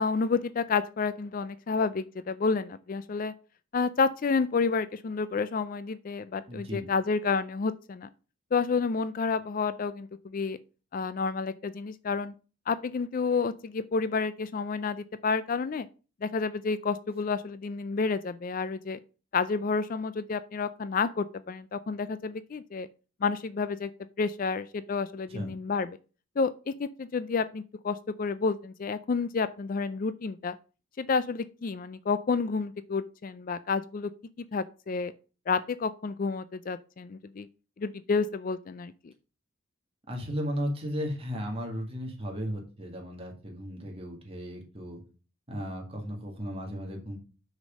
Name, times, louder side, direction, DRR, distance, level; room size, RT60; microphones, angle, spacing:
voice 1, 0.0-3.3 3.7-8.1 8.5-10.6 10.9-12.3 12.7-15.9 16.2-19.0 19.3-22.9 23.2-23.9 24.2-25.9 26.4-30.6 31.0-34.1 34.5-35.1 35.5-37.5 37.8-39.1, left 4 dB, 40° left, 0.4 m, -30 dB
voice 2, 6.5-6.9 25.3-25.5 40.1-45.0 45.5-47.2, equal, 30° right, 2.0 m, -35 dB
6.4 x 5.2 x 5.2 m
head